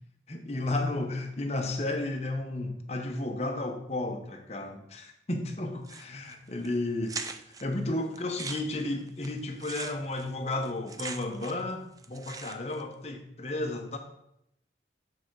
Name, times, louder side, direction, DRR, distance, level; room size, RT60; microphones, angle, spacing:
voice 1, 0.3-7.2 7.6-14.0, left 2 dB, 35° left, 3 dB, 1.0 m, -33 dB
sound 1, 5.8-6.3 6.6-6.7 7.1-7.6 8.2-11.7 12.0-12.8, right 4 dB, 20° right, 0.4 m, -40 dB
9.0 x 4.9 x 4.7 m, 0.78 s
head